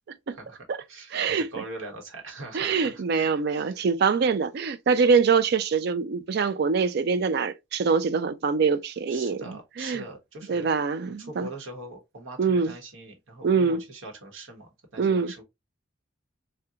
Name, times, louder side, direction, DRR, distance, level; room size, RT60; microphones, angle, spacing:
voice 1, 0.3-3.8 9.1-10.7 11.2-15.4, right 2 dB, 80° right, 1.1 m, -42 dB
voice 2, 1.1-1.5 2.5-10.0 10.5-11.5 12.4-12.7 13.4-13.8 15.0-15.3, right 5 dB, 55° right, 0.4 m, -24 dB
3.6 x 2.2 x 2.7 m
head